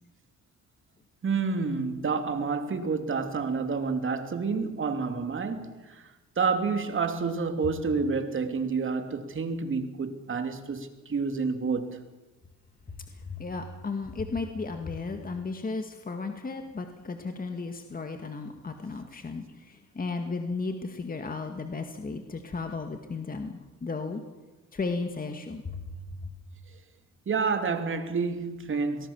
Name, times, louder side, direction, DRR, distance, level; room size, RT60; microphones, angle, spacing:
voice 1, 1.2-6.1 6.4-12.0 15.1-15.2 27.3-29.1, right 4 dB, 40° right, 2.9 m, -29 dB
voice 2, 13.3-24.2 24.7-25.9 26.2-26.3, left 4 dB, 30° left, 2.1 m, -34 dB
22.5 x 19.5 x 7.3 m
cardioid pair, 90°, 30 cm